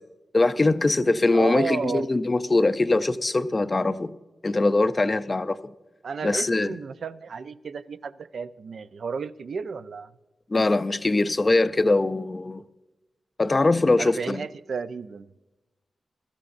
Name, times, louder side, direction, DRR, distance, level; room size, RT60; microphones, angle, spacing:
voice 1, 0.3-4.2 4.4-5.6 6.2-6.7 10.5-12.6 13.4-14.4, left 2 dB, 25° left, 0.4 m, -22 dB
voice 2, 1.3-2.1 6.0-10.1 14.0-15.3, right 5 dB, 60° right, 0.5 m, -32 dB
22.5 x 13.0 x 2.5 m
wide cardioid pair, 170°, 0 cm